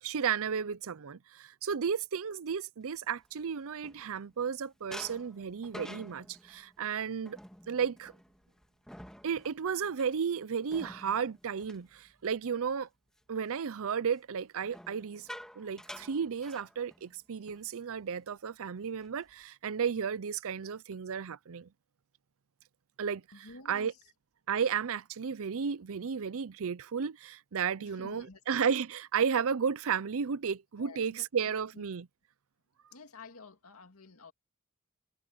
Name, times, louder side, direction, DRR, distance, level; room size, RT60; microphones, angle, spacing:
voice 1, 0.0-7.4 7.7-8.1 9.2-12.9 13.3-15.3 15.6-21.7 23.0-23.2 23.7-23.9 24.5-32.1, right 6 dB, 70° right, 0.5 m, -33 dB
sound 1, 3.0-4.5 4.9-12.7 13.1-13.4 14.6-17.2 17.5-17.7 18.0-18.3 18.8-19.4, equal, 5° left, 2.0 m, -50 dB
voice 2, 23.3-24.0 27.8-28.4 30.8-31.8 32.9-34.3, left 3 dB, 70° left, 2.3 m, -51 dB
head